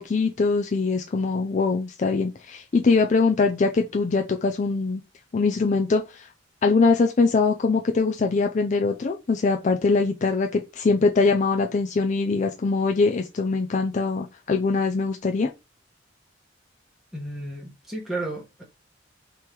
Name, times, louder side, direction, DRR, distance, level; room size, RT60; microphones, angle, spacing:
voice 1, 0.0-5.0 5.3-6.3 6.6-15.5, left 4 dB, 40° left, 0.4 m, -22 dB
voice 2, 17.1-18.6, right 2 dB, ahead, 1.0 m, -33 dB
3.5 x 3.0 x 4.7 m
head